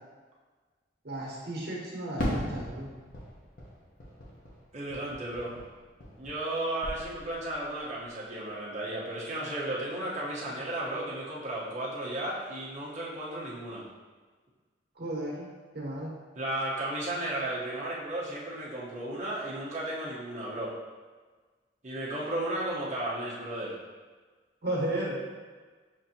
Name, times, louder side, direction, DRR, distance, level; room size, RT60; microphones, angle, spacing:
voice 1, 1.0-2.9 15.0-15.5 15.7-16.1 24.6-25.2, right 1 dB, 60° right, -4 dB, 1.3 m, -34 dB
Fireworks, 2.2-6.5 6.8-7.6, equal, 55° left, 0.8 m, -37 dB
voice 2, 4.7-5.5 6.2-13.8 16.3-20.7 21.8-23.7, right 1 dB, 40° right, -6 dB, 1.0 m, -34 dB
6.4 x 2.7 x 2.8 m, 1.4 s
head